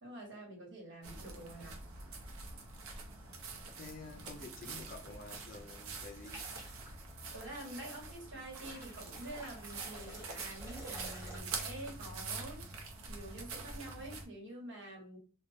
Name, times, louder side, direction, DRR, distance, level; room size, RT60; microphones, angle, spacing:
voice 1, 0.0-1.8 7.3-12.6 13.1-15.2, right 1 dB, 55° right, 1.3 m, -47 dB
sound 1, 1.0-14.3, right 3 dB, 85° right, 0.7 m, -45 dB
voice 2, 3.8-6.4, left 3 dB, 40° left, 0.5 m, -49 dB
sound 2, 6.2-7.0 7.4-7.7 8.6-11.4, right 1 dB, 15° right, 0.8 m, -51 dB
2.4 x 2.3 x 3.4 m
head